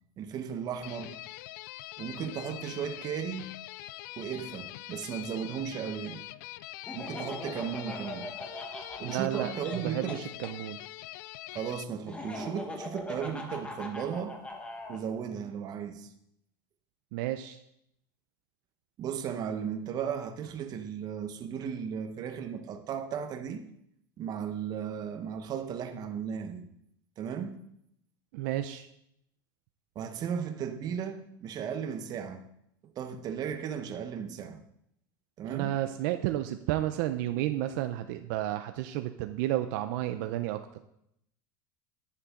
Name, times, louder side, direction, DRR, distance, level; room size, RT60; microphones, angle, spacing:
voice 1, 0.2-1.2 2.0-3.5 4.2-6.3 6.9-8.3 9.0-10.2 11.5-14.4 14.9-16.1 19.0-23.6 24.2-26.7 27.2-27.6 29.9-32.4 33.0-34.6 35.4-35.7, right 7 dB, 35° right, 1.1 m, -35 dB
sound 1, 0.8-11.8, left 17 dB, 65° left, 0.4 m, -44 dB
Laughter, 6.9-10.5 12.1-15.0, left 1 dB, 10° left, 1.5 m, -41 dB
voice 2, 9.0-9.5 9.8-10.8 17.1-17.6 28.3-28.9 35.4-40.8, right 14 dB, 65° right, 0.6 m, -32 dB
11.0 x 10.0 x 3.8 m
supercardioid pair, 135°, 11 cm